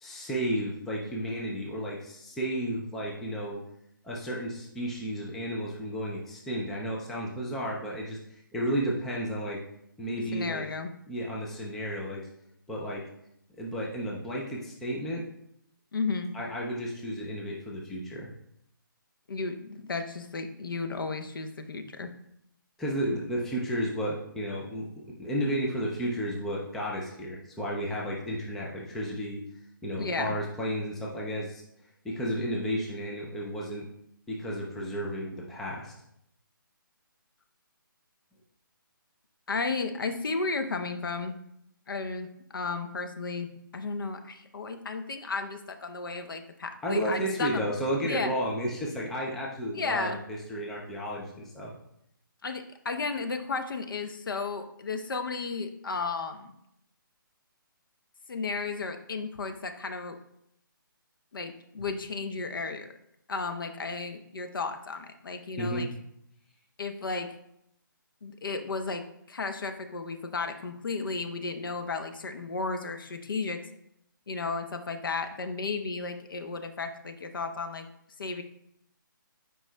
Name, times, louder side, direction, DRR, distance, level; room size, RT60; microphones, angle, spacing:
voice 1, 0.0-3.6 4.0-9.6 10.0-10.6 11.1-12.2 12.7-13.0 13.6-15.2 16.3-18.3 22.8-24.9 25.2-29.4 29.8-31.6 32.0-33.8 34.3-35.9 46.8-51.7 65.6-65.9, equal, ahead, -4 dB, 0.3 m, -32 dB
voice 2, 10.3-10.9 15.9-16.3 19.3-22.1 30.0-30.3 39.5-41.3 41.9-42.3 42.5-43.5 43.7-47.6 48.0-48.3 48.9-49.0 49.7-50.2 52.4-56.5 58.3-60.2 61.3-62.9 63.3-65.9 66.8-67.3 68.2-69.0 69.3-73.6 74.3-77.9 78.2-78.4, left 4 dB, 70° left, 7 dB, 0.7 m, -33 dB
9.0 x 4.7 x 2.2 m, 0.76 s
hypercardioid pair, 160°, 12 cm